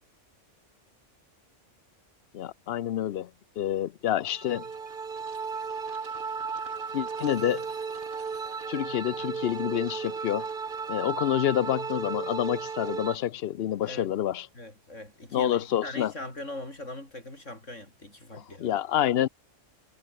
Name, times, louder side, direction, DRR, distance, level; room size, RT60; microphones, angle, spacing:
voice 1, 2.3-3.3 3.6-4.7 6.9-7.6 8.7-10.5 10.9-14.5 15.3-16.1 18.3-19.3, left 11 dB, 60° left, 0.8 m, -28 dB
sound 1, 4.2-13.2, right 5 dB, 45° right, 1.4 m, -35 dB
voice 2, 14.5-18.8, left 1 dB, 80° left, 7.3 m, -41 dB
omnidirectional pair, 1.3 m